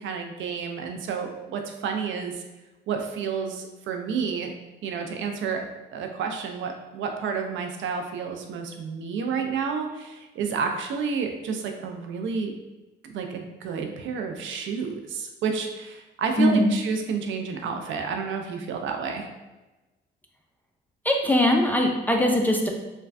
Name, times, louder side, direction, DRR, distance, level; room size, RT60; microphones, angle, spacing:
voice 1, 0.0-2.4 2.9-4.5 4.8-12.5 13.1-19.3, right 5 dB, 75° right, 4 dB, 0.4 m, -30 dB
voice 2, 16.4-16.8 21.0-22.7, left 1 dB, 10° left, 1 dB, 0.3 m, -21 dB
3.1 x 2.2 x 2.5 m, 1.1 s
cardioid pair, 90°, 20 cm